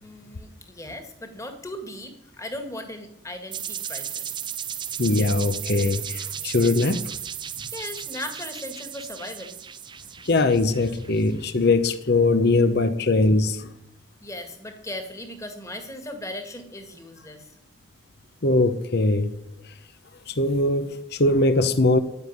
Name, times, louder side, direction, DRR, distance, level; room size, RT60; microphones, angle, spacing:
voice 1, 0.0-4.3 7.7-9.6 14.2-17.6, left 1 dB, 15° left, 1.8 m, -37 dB
sound 1, 3.5-11.3, right 9 dB, 20° right, 0.5 m, -35 dB
voice 2, 5.0-7.0 10.2-13.7 18.4-19.3 20.3-22.0, left 2 dB, 50° left, 0.9 m, -21 dB
10.0 x 9.6 x 9.5 m
head